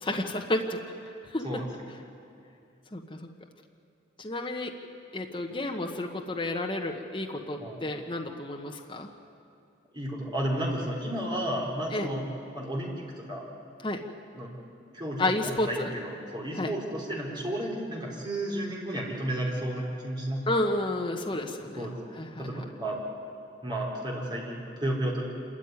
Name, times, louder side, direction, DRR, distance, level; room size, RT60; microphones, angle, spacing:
voice 1, 0.0-0.8 1.3-1.6 2.9-3.3 4.2-4.8 5.1-9.1 11.9-12.1 13.8-14.0 15.2-15.9 16.6-16.7 20.5-21.8 22.2-22.6, left 1 dB, 25° left, 2 dB, 1.2 m, -31 dB
voice 2, 9.9-12.2 12.5-12.9 13.2-13.4 14.3-14.5 14.9-20.6 21.7-21.9 22.4-23.0 23.6-25.2, right 1 dB, 25° right, -4 dB, 4.1 m, -32 dB
26.5 x 13.5 x 9.6 m, 2.4 s
head